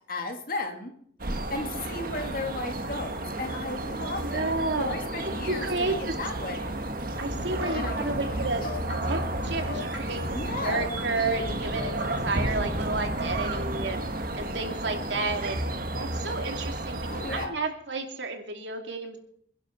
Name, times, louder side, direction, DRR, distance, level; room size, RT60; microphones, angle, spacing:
voice 1, 0.1-0.9 1.5-6.8 7.7-8.5 10.3-10.9 17.1-17.5, left 2 dB, 50° left, 4 dB, 2.4 m, -35 dB
sound 1, 1.2-17.5, right 1 dB, 55° right, 1.5 m, -32 dB
voice 2, 4.0-4.9 5.5-6.1 7.2-14.0 14.4-15.6 15.9-19.2, right 3 dB, 75° right, 4 dB, 2.6 m, -31 dB
sound 2, 7.1-12.3, left 2 dB, 80° left, 4.5 m, -39 dB
27.0 x 11.0 x 4.5 m, 0.66 s
head